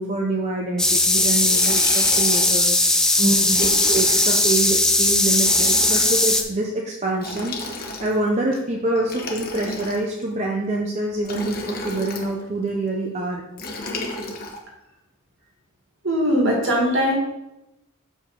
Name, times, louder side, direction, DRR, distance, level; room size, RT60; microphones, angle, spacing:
voice 1, 0.0-3.1 3.6-13.4, right 2 dB, 30° right, -1 dB, 0.7 m, -26 dB
sound 1, 0.8-6.4, left 1 dB, 5° left, 0.4 m, -18 dB
Liquid, 1.2-2.6 3.5-4.5 5.3-6.2 7.2-8.3 9.0-10.2 11.2-12.3 13.6-14.6, left 2 dB, 40° left, 1.1 m, -33 dB
voice 2, 3.2-3.6 16.0-17.1, equal, 55° right, -1 dB, 2.2 m, -20 dB
6.9 x 5.3 x 5.4 m, 0.93 s
head